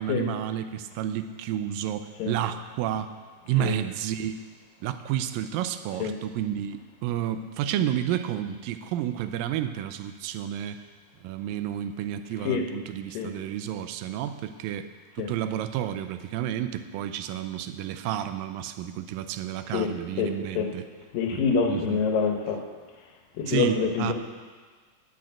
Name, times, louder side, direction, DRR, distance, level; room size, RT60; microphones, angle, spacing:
voice 1, 0.0-3.1 3.5-4.4 4.8-10.8 11.2-14.9 15.2-20.9 21.3-22.0 23.5-24.1, right 11 dB, 85° right, 10 dB, 2.3 m, -31 dB
voice 2, 20.2-20.7 21.1-22.6 23.4-24.1, left 5 dB, 80° left, 3 dB, 2.8 m, -26 dB
10.5 x 6.4 x 8.6 m, 1.5 s
omnidirectional pair, 3.9 m